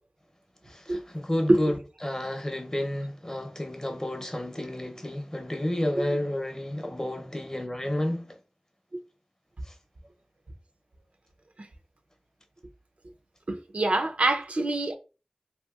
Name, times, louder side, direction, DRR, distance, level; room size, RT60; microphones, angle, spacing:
voice 1, 0.7-1.7 2.0-8.3, left 1 dB, 25° left, 0.6 m, -31 dB
voice 2, 13.5-15.0, right 2 dB, 65° right, 0.4 m, -25 dB
2.7 x 2.6 x 2.3 m
wide cardioid pair, 45°, 2 cm